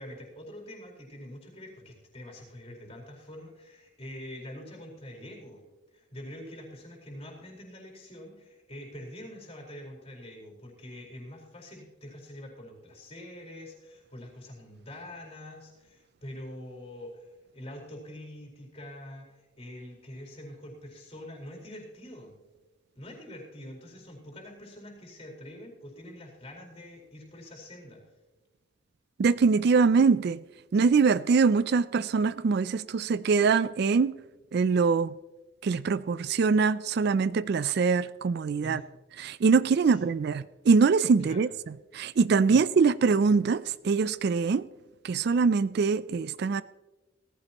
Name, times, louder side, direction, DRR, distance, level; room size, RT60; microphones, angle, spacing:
voice 1, 0.0-5.6 5.9-22.3 23.0-28.0 38.6-38.8 39.8-40.1 41.2-41.5 42.5-42.7, left 1 dB, 30° left, 4.4 m, -45 dB
voice 2, 29.2-30.4 30.7-34.1 34.5-35.1 35.6-38.8 39.2-41.5 41.9-44.6 45.0-46.6, right 5 dB, 50° right, 0.3 m, -23 dB
18.0 x 15.0 x 3.0 m
head